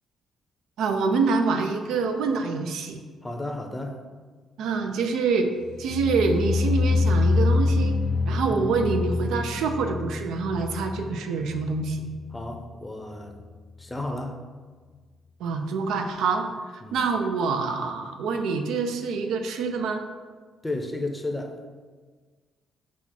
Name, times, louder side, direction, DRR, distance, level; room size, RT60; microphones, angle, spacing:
voice 1, 0.8-3.0 4.6-5.5 5.8-8.0 8.3-12.0 15.4-20.1, right 4 dB, 85° right, 6 dB, 0.4 m, -26 dB
voice 2, 3.2-4.0 8.5-8.8 12.3-13.4 13.8-14.4 16.8-17.0 20.6-21.6, left 2 dB, 15° left, 3 dB, 0.6 m, -33 dB
sound 1, 5.6-12.7 13.0-13.5 13.8-13.9, left 3 dB, 80° left, 0.3 m, -26 dB
5.7 x 2.4 x 3.8 m, 1.5 s
cardioid pair, 90°, 0 cm